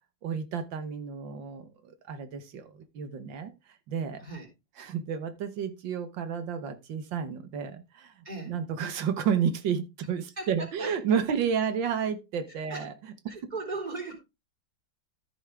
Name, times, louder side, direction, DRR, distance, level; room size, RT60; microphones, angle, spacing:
voice 1, 0.2-4.2 4.8-12.9 13.3-13.5, right 7 dB, 90° right, 9 dB, 1.9 m, -31 dB
voice 2, 8.2-8.6 10.4-10.9 12.5-12.8 13.3-14.1, right 3 dB, 20° right, 0 dB, 3.9 m, -38 dB
14.0 x 7.2 x 3.5 m, 0.25 s
omnidirectional pair, 2.0 m